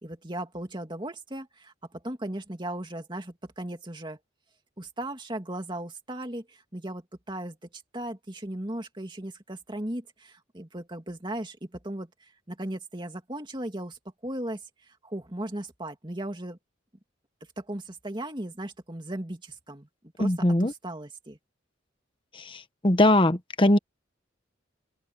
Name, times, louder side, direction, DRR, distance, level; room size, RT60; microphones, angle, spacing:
voice 1, 0.0-4.2 4.8-16.6 17.6-19.9 20.2-21.4, right 1 dB, 25° right, 2.5 m, -37 dB
voice 2, 20.2-20.7 22.8-23.8, left 1 dB, 25° left, 1.0 m, -20 dB
open air
head